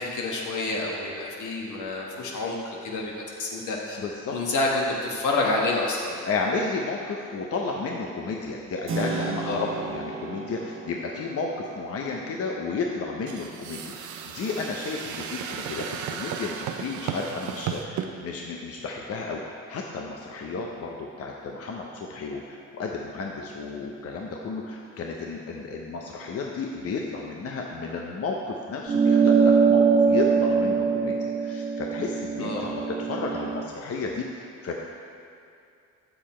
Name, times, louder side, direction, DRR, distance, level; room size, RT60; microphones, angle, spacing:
voice 1, 0.0-3.1 3.4-4.0 4.3-6.2 9.4-9.7 32.4-32.7, left 2 dB, 75° left, -2 dB, 1.5 m, -28 dB
voice 2, 4.0-4.4 6.3-34.8, left 4 dB, 50° left, 0 dB, 0.7 m, -32 dB
Keyboard (musical), 8.9-17.4, right 4 dB, 45° right, 1.0 m, -38 dB
sound 1, 13.3-18.1, right 8 dB, 75° right, 0.6 m, -34 dB
sound 2, 28.9-33.7, right 5 dB, 20° right, 0.3 m, -22 dB
7.4 x 6.9 x 4.3 m, 2.5 s
cardioid pair, 90°, 30 cm